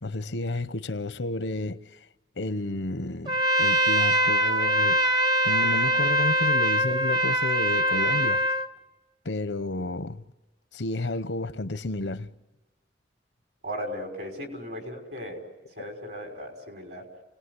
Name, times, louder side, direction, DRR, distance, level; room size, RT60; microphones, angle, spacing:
voice 1, 0.0-1.8 2.4-5.0 5.4-8.4 9.2-10.2 10.7-12.3 15.8-15.9, left 2 dB, 85° left, 0.9 m, -31 dB
Trumpet, 3.3-8.7, right 1 dB, 25° right, 0.8 m, -23 dB
voice 2, 13.6-15.4 15.8-17.1, equal, 65° right, 5.4 m, -36 dB
30.0 x 19.0 x 9.7 m
head